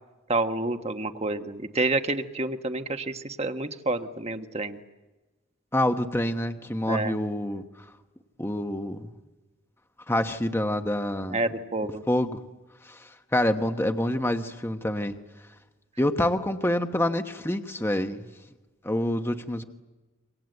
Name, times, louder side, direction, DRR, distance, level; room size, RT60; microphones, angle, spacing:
voice 1, 0.3-4.8 6.9-7.2 11.3-12.0, right 2 dB, 30° right, 7 dB, 1.4 m, -29 dB
voice 2, 5.7-7.6 8.4-9.1 10.1-11.4 12.1-12.3 12.9-13.0 13.3-15.1 16.0-18.2 18.8-19.6, left 1 dB, 10° left, 6 dB, 1.2 m, -26 dB
28.0 x 25.0 x 8.0 m, 1.1 s
head